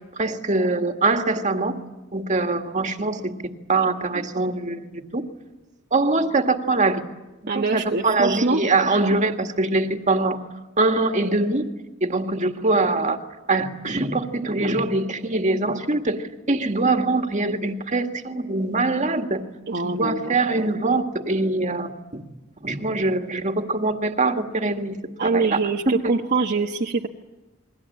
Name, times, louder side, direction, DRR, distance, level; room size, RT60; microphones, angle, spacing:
voice 1, 0.1-1.7 2.1-3.3 3.7-5.2 5.9-7.0 7.5-10.4 10.8-11.7 12.0-13.2 13.5-19.4 19.8-22.2 22.6-25.6 25.9-26.1, right 2 dB, 35° right, 2.0 m, -23 dB
voice 2, 7.5-8.6 8.9-9.0 19.7-20.4 25.2-27.1, right 3 dB, 50° right, 1.2 m, -24 dB
29.5 x 22.5 x 8.7 m
head